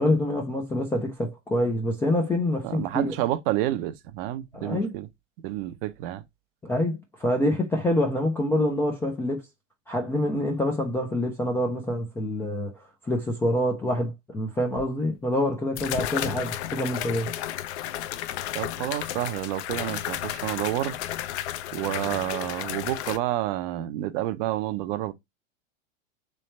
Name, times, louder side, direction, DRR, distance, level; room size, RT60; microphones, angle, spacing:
voice 1, 0.0-3.1 4.5-5.0 6.6-9.4 9.9-12.8 13.0-17.3, left 1 dB, 5° left, 0.3 m, -26 dB
voice 2, 2.6-5.1 5.4-6.2 18.5-21.0 21.7-25.1, right 14 dB, 45° right, 0.5 m, -29 dB
sound 1, 14.8-14.9 15.8-23.2, left 12 dB, 55° left, 0.6 m, -33 dB
3.2 x 3.1 x 4.2 m
hypercardioid pair, 125°, 39 cm